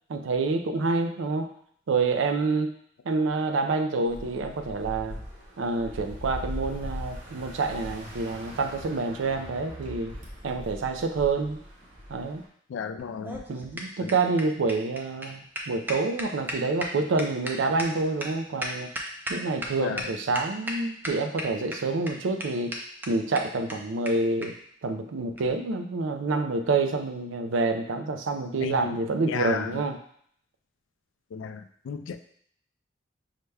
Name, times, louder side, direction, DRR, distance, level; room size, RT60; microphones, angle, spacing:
voice 1, 0.1-1.5 1.9-2.7 3.1-5.2 5.6-10.1 10.4-11.6 12.1-12.4 13.5-18.9 19.3-22.8 23.1-24.5 24.8-30.0, right 3 dB, 85° right, 7 dB, 0.4 m, -27 dB
sound 1, 4.1-12.4, equal, 40° right, 0.9 m, -40 dB
voice 2, 12.7-13.4 14.0-14.1 19.8-20.1 28.6-29.0 29.3-29.8 31.3-32.2, left 6 dB, 80° left, 9 dB, 0.3 m, -33 dB
sound 2, 13.0-19.7 20.0-20.1 20.3-20.7 21.0-21.7 22.1-22.2 22.4-22.5 22.7-22.8 23.0-23.1 23.3-23.4 23.7-23.8 24.0-24.1 24.4-24.5 25.3-25.5, equal, 10° right, 0.4 m, -34 dB
5.5 x 2.2 x 3.3 m, 0.64 s
head